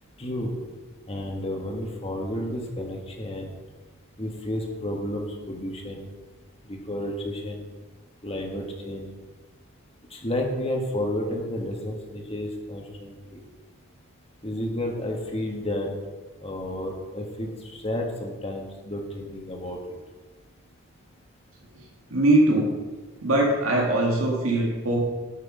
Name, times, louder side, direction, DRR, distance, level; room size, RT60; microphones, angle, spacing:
voice 1, 0.2-0.5 1.1-3.5 4.2-6.1 6.7-7.6 8.2-9.1 10.1-13.4 14.4-15.9 16.4-19.8, left 1 dB, 30° left, 1 dB, 1.6 m, -31 dB
voice 2, 22.1-22.7 23.2-25.0, right 1 dB, 80° right, -2 dB, 2.1 m, -21 dB
11.5 x 6.3 x 5.1 m, 1.3 s
head